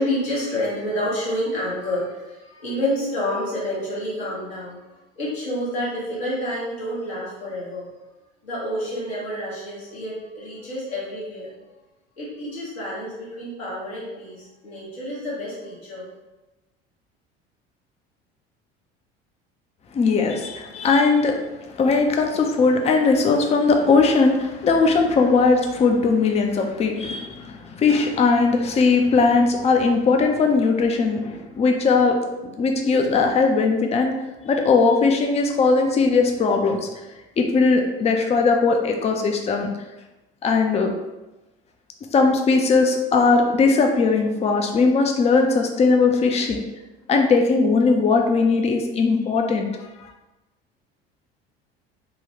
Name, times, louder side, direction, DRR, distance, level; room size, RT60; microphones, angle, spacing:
voice 1, 0.0-7.9 8.4-11.5 12.2-16.1, left 1 dB, 80° left, -7 dB, 1.3 m, -29 dB
voice 2, 19.9-21.4 21.7-32.2 32.6-34.1 34.4-36.9 37.4-39.7 40.4-40.9 42.1-46.6 47.1-49.7, left 4 dB, 20° left, 3 dB, 0.4 m, -19 dB
3.6 x 2.2 x 2.8 m, 1.0 s
figure-of-eight pair, 65°, 31 cm